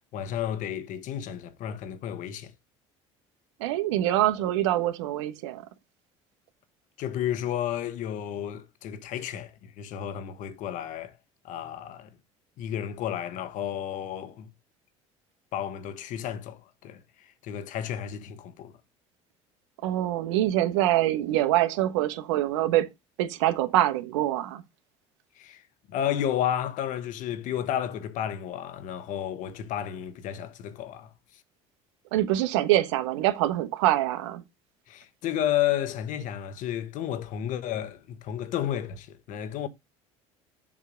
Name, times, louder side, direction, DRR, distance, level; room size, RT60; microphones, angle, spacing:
voice 1, 0.1-2.5 7.0-11.1 11.4-12.1 12.6-14.5 15.5-18.8 25.4-25.6 25.9-31.1 34.9-39.7, left 10 dB, 60° left, 1.3 m, -32 dB
voice 2, 3.6-5.6 19.8-22.9 23.2-24.6 32.1-34.4, right 14 dB, 85° right, 1.1 m, -25 dB
7.3 x 3.4 x 6.3 m
supercardioid pair, 95°, 15 cm